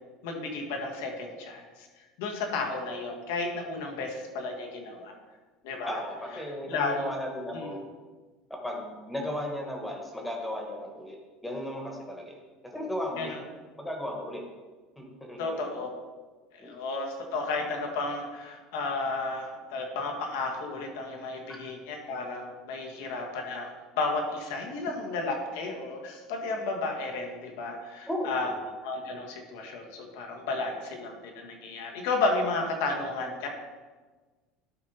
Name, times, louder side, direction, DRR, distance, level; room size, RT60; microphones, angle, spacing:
voice 1, 0.2-1.9 2.2-5.1 5.6-6.0 6.7-7.1 7.5-7.8 13.2-13.4 15.4-15.9 16.5-28.5 28.8-33.5, left 3 dB, 80° left, 1 dB, 1.6 m, -33 dB
voice 2, 5.9-7.8 8.6-11.2 11.4-12.4 12.7-13.4 13.8-14.4 15.0-15.7 16.6-16.7 28.1-28.6, left 1 dB, 5° left, 0 dB, 1.3 m, -35 dB
11.5 x 4.0 x 4.2 m, 1.3 s
cardioid pair, 160°, 0 cm